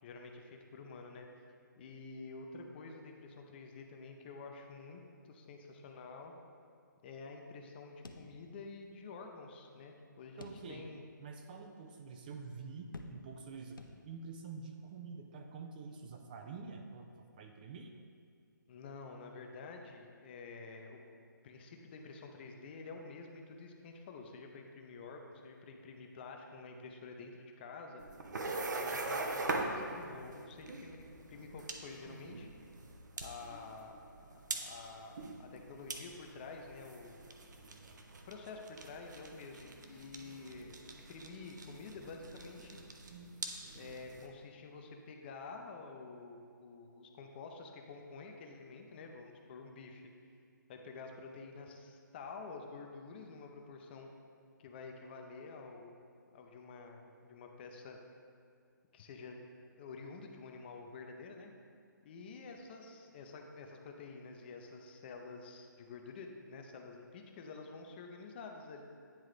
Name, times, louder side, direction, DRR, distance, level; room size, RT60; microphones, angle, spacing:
voice 1, 0.0-1.3 1.8-6.3 7.0-11.0 18.7-21.0 21.4-28.0 28.8-32.5 33.2-37.3 38.3-42.8 43.7-50.1 50.7-54.1 54.6-56.0 56.3-58.0 58.9-59.4 59.8-61.5 62.0-68.8, left 4 dB, 30° left, 3 dB, 0.6 m, -49 dB
sound 1, 8.0-8.9 9.2-9.3 10.4-11.1 11.6-11.7 12.9-13.5 13.8-14.4, left 2 dB, 85° left, 0.6 m, -51 dB
voice 2, 10.4-10.9 11.2-17.9, right 4 dB, 25° right, 4 dB, 0.3 m, -47 dB
sound 2, 28.0-44.3, right 2 dB, 60° right, 0.7 m, -43 dB
9.7 x 3.6 x 3.2 m, 2.3 s
figure-of-eight pair, 140°, 11 cm